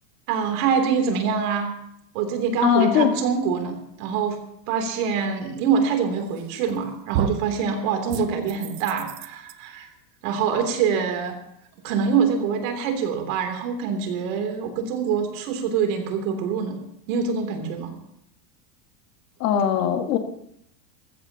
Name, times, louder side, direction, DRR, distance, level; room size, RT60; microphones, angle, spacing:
voice 1, 0.3-1.7 2.1-4.4 4.7-9.9 10.2-11.3 11.8-16.8 17.1-17.9, right 6 dB, 60° right, 4 dB, 3.2 m, -25 dB
voice 2, 2.6-3.2 19.4-20.2, left 9 dB, 80° left, 5 dB, 2.0 m, -20 dB
sound 1, 6.4-6.8 7.1-7.5 8.1-9.5, right 10 dB, 40° right, 0.7 m, -30 dB
20.5 x 15.0 x 2.9 m, 0.76 s
supercardioid pair, 165°, 47 cm